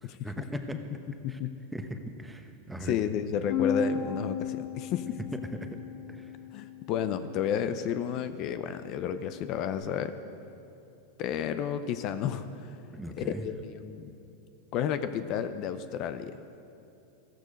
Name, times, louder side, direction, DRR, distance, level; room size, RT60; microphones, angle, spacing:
voice 1, 0.0-0.8 1.3-1.4 1.7-3.0 5.3-5.8 6.1-6.4 12.9-13.5, right 1 dB, 5° right, 6 dB, 1.0 m, -39 dB
voice 2, 2.8-5.2 6.5-10.1 11.2-12.8 13.2-14.1 14.7-16.4, left 9 dB, 45° left, 11 dB, 0.6 m, -32 dB
Bass guitar, 3.5-9.7, left 5 dB, 65° left, 3.2 m, -36 dB
14.5 x 14.0 x 5.2 m, 2.7 s
supercardioid pair, 130°, 0 cm